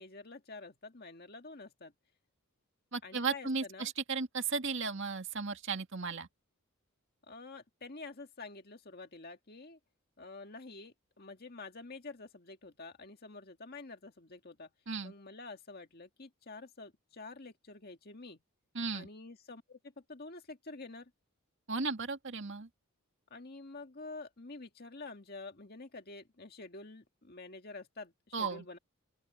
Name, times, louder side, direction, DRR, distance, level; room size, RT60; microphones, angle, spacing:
voice 1, 0.0-1.9 3.0-3.9 7.3-9.8 10.2-14.7 15.0-18.4 18.9-19.8 20.1-21.1 23.3-28.8, left 3 dB, 45° left, 1.9 m, -48 dB
voice 2, 2.9-6.3 14.9-15.1 18.7-19.1 21.7-22.7 28.3-28.6, right 4 dB, 55° right, 2.0 m, -35 dB
open air
head